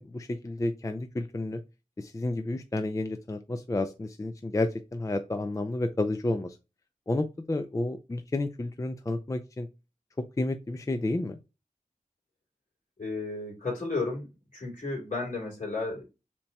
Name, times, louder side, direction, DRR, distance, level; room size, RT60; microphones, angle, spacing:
voice 1, 0.0-1.6 2.0-6.6 7.1-9.7 10.4-11.4, left 2 dB, 20° left, 8 dB, 0.4 m, -31 dB
voice 2, 13.0-14.3 14.5-16.0, left 3 dB, 60° left, -3 dB, 2.7 m, -33 dB
7.2 x 2.8 x 2.2 m, 0.28 s
wide cardioid pair, 70°, 15 cm